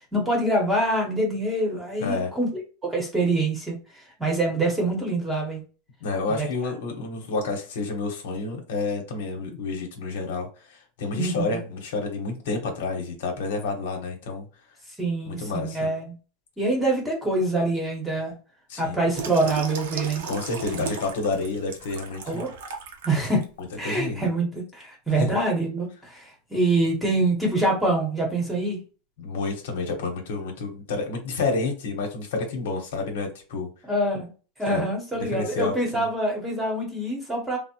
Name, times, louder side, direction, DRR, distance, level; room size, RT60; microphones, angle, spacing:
voice 1, 0.1-2.5 2.8-3.7 4.2-5.6 6.4-6.7 11.1-11.5 15.0-16.1 16.6-18.3 18.8-20.2 20.8-20.9 22.3-22.5 23.0-23.4 23.8-28.8 33.9-34.3 34.6-37.6, right 2 dB, 5° right, -1 dB, 0.9 m, -25 dB
voice 2, 2.0-2.3 6.0-14.5 15.3-15.9 18.7-18.9 20.2-22.4 23.8-24.3 25.2-25.4 29.2-33.7 34.7-34.9 35.1-36.1, left 3 dB, 85° left, 3 dB, 0.9 m, -29 dB
Water tap faucet / Sink (filling or washing), 19.1-23.4 23.9-24.1, right 5 dB, 85° right, 0.6 m, -36 dB
3.3 x 2.0 x 2.8 m, 0.35 s
supercardioid pair, 160°, 0 cm